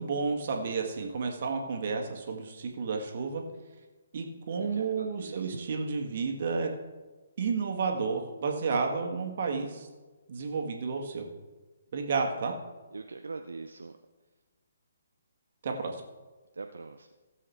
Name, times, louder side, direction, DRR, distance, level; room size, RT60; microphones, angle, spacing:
voice 1, 0.0-3.4 4.1-6.7 7.4-9.9 10.3-11.3 11.9-12.5 15.6-16.0, right 5 dB, 45° right, 3 dB, 1.7 m, -31 dB
voice 2, 4.5-5.7 12.9-13.9 16.5-17.1, right 3 dB, 70° right, 6 dB, 0.6 m, -42 dB
16.0 x 7.5 x 3.5 m, 1.3 s
figure-of-eight pair, 135°, 0 cm